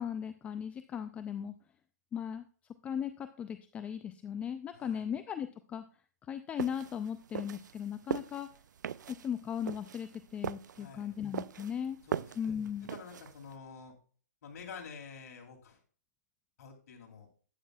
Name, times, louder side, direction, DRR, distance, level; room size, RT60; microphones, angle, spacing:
voice 1, 0.0-1.5 2.1-2.5 2.8-5.8 6.3-8.5 9.2-12.0 12.4-12.9, left 8 dB, 15° left, 10 dB, 0.3 m, -37 dB
voice 2, 4.7-5.1 10.8-11.1 12.0-12.6 12.9-13.9 14.4-15.8 16.6-17.3, left 5 dB, 60° left, 2 dB, 2.7 m, -49 dB
sound 1, 6.6-13.5, right 8 dB, 85° right, 0.4 m, -40 dB
11.5 x 9.3 x 2.3 m, 0.41 s
hypercardioid pair, 145°, 10 cm